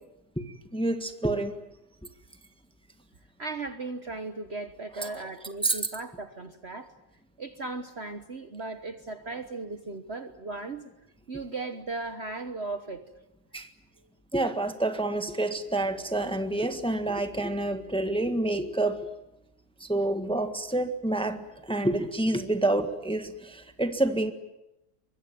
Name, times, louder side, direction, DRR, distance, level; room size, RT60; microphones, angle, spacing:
voice 1, 0.4-1.5 5.0-5.3 5.6-5.8 13.5-13.7 14.3-19.1 19.8-24.3, right 2 dB, 5° left, 8 dB, 1.4 m, -28 dB
voice 2, 3.4-6.9 7.4-10.8 11.3-13.0, right 3 dB, 40° right, 9 dB, 1.3 m, -37 dB
24.0 x 22.0 x 9.4 m, 0.89 s
omnidirectional pair, 1.9 m